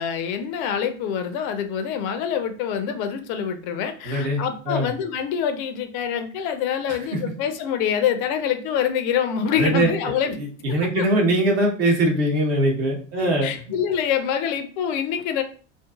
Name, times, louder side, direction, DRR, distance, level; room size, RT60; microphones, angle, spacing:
voice 1, 0.0-10.4 11.0-11.1 13.2-15.4, left 8 dB, 40° left, 9 dB, 0.4 m, -25 dB
voice 2, 4.0-4.9 7.1-7.2 9.5-9.9 10.4-13.5, right 1 dB, 50° right, -1 dB, 0.9 m, -22 dB
2.5 x 2.5 x 2.3 m, 0.39 s
figure-of-eight pair, 75°, 38 cm